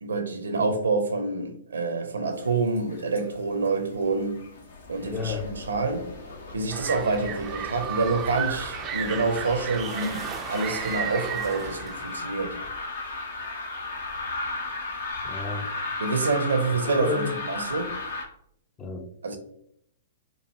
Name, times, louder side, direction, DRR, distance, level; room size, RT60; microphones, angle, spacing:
voice 1, 0.0-4.5 4.9-6.1 6.5-12.6 16.0-17.9 19.2-19.4, right 3 dB, 75° right, 0.6 m, -27 dB
sound 1, 2.3-3.3 3.5-18.2, left 3 dB, 60° left, 0.8 m, -36 dB
voice 2, 5.1-5.5 15.2-15.7 17.0-17.4 18.8-19.4, left 5 dB, 25° left, 0.5 m, -32 dB
sound 2, 6.7-12.2, right 9 dB, 25° right, 0.4 m, -34 dB
4.6 x 2.5 x 2.8 m
figure-of-eight pair, 110°, 0 cm